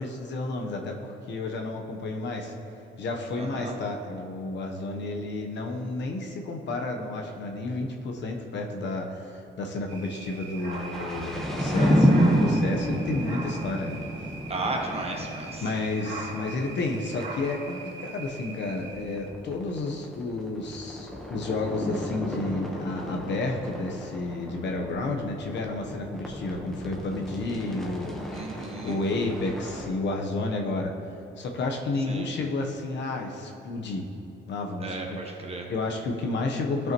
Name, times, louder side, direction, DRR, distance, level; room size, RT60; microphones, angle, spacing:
voice 1, 0.0-2.5 3.0-14.0 15.6-28.2 28.8-30.9 31.4-34.1 34.5-35.2 35.7-36.9, left 2 dB, 65° left, 2 dB, 1.0 m, -31 dB
voice 2, 3.3-3.7 14.5-15.6 28.3-29.0 32.1-32.3 34.8-35.7, right 2 dB, 30° right, 1 dB, 1.2 m, -34 dB
sound 1, 9.9-19.3, right 3 dB, 80° right, 2.0 m, -40 dB
sound 2, 10.7-17.5 17.8-17.9 18.1-18.2 18.5-29.9, equal, ahead, 1.1 m, -30 dB
12.5 x 5.6 x 3.0 m, 2.8 s
cardioid pair, 90°, 20 cm